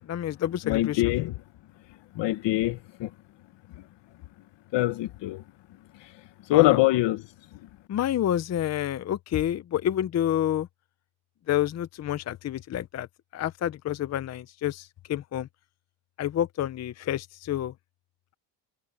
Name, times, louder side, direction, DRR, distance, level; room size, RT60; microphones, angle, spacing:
voice 1, 0.1-1.0 6.5-6.8 7.9-10.7 11.5-13.1 13.3-15.5 16.2-17.7, left 11 dB, 35° left, 0.6 m, -28 dB
voice 2, 0.7-1.3 2.1-3.1 4.7-5.4 6.5-7.2, left 17 dB, 70° left, 1.2 m, -23 dB
cardioid pair, 130°, 45 cm